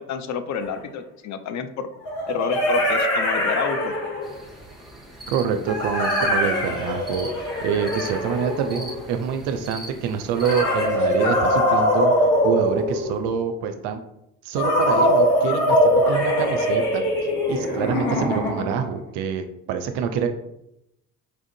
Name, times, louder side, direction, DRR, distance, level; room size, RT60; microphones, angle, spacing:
voice 1, 0.0-1.9 2.3-3.9, left 7 dB, 40° left, 9 dB, 0.5 m, -29 dB
sound 1, 0.6-0.7 2.1-4.4 5.7-9.1 10.4-13.4 14.6-18.9, equal, 80° left, 1.3 m, -22 dB
sound 2, 4.2-10.9, equal, ahead, 0.8 m, -41 dB
voice 2, 5.3-7.3 7.6-14.0 14.4-17.0 17.5-20.3, right 7 dB, 65° right, 8 dB, 0.5 m, -26 dB
4.4 x 2.4 x 2.6 m, 0.81 s
hypercardioid pair, 55°, 43 cm